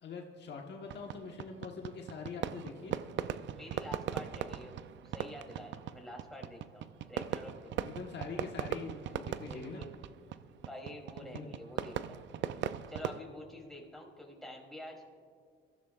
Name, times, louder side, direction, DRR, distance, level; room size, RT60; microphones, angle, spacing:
voice 1, 0.0-3.0 7.8-9.8 11.3-11.5, left 5 dB, 60° left, 1 dB, 1.4 m, -43 dB
Fireworks, 0.9-13.2, right 10 dB, 65° right, 0.5 m, -39 dB
voice 2, 3.5-4.7 5.0-7.8 8.4-8.5 9.5-9.9 10.6-12.2 12.9-15.0, left 1 dB, ahead, -2 dB, 3.2 m, -48 dB
25.0 x 14.5 x 2.5 m, 2.2 s
cardioid pair, 90°, 20 cm